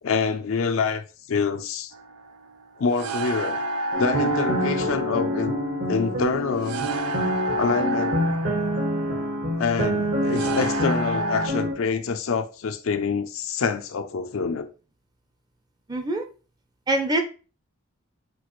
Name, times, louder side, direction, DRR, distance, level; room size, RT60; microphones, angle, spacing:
voice 1, 0.0-1.0 1.3-1.9 2.8-3.6 4.0-5.6 5.9-6.8 7.6-8.2 9.6-14.7, left 5 dB, 70° left, 0.5 m, -26 dB
sound 1, 1.9-11.5, right 2 dB, 90° right, 0.5 m, -31 dB
sound 2, 3.9-11.7, equal, 75° right, 1.7 m, -26 dB
voice 2, 15.9-16.3 16.9-17.2, right 2 dB, 20° right, 0.5 m, -24 dB
6.0 x 2.4 x 3.1 m
head